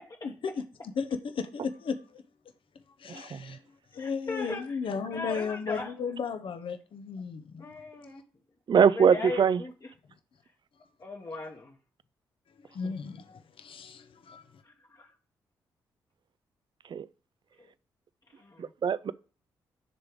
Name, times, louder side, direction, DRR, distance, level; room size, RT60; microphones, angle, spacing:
voice 1, 0.2-0.6 1.0-2.2 3.0-3.6 3.9-7.7 12.7-14.5, left 5 dB, 60° left, 0.8 m, -35 dB
voice 2, 3.1-3.6 8.7-9.6 12.8-13.0 16.9-17.1 18.6-19.1, right 7 dB, 45° right, 0.4 m, -23 dB
voice 3, 4.0-4.6 5.1-5.9 7.6-8.2 8.9-9.7 11.0-11.8 14.6-15.1 17.6-17.7 18.4-18.7, left 3 dB, 40° left, 1.3 m, -38 dB
9.8 x 3.5 x 4.8 m
hypercardioid pair, 40°, 10 cm